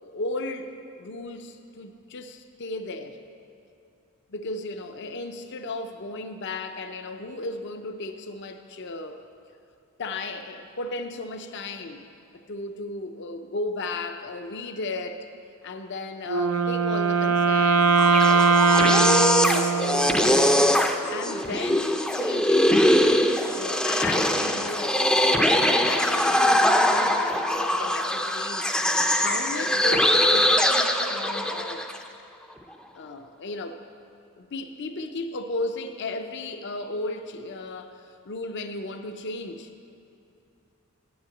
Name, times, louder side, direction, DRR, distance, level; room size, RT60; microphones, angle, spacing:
voice 1, 0.0-0.7 1.0-3.2 4.3-9.2 10.0-12.0 12.3-15.3 15.6-20.6 21.1-22.7 23.6-31.8 32.9-33.8 34.4-39.7, left 2 dB, 55° left, 7 dB, 0.6 m, -35 dB
Wind instrument woodwind instrument, 16.3-20.5, right 4 dB, 75° right, 0.5 m, -21 dB
sound 1, 17.8-32.0, left 1 dB, 5° left, 0.5 m, -22 dB
9.2 x 8.7 x 7.9 m, 2.7 s
head